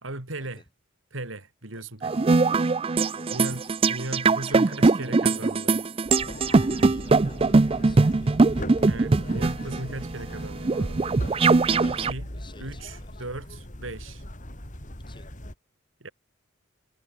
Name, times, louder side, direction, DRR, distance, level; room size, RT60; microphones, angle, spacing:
voice 1, 0.0-0.6 1.1-2.3 3.3-5.8 8.9-11.0 11.8-12.3 12.6-14.2 16.0-16.1, right 2 dB, 85° right, 3.3 m, -37 dB
sound 1, 2.0-12.1, right 3 dB, 30° right, 0.4 m, -21 dB
voice 2, 2.4-2.7 3.1-3.7 4.4-5.4 6.8-8.6 11.7-13.2 15.1-15.3, left 2 dB, 25° left, 5.6 m, -51 dB
sound 2, 6.0-15.5, left 1 dB, 40° left, 4.3 m, -40 dB
head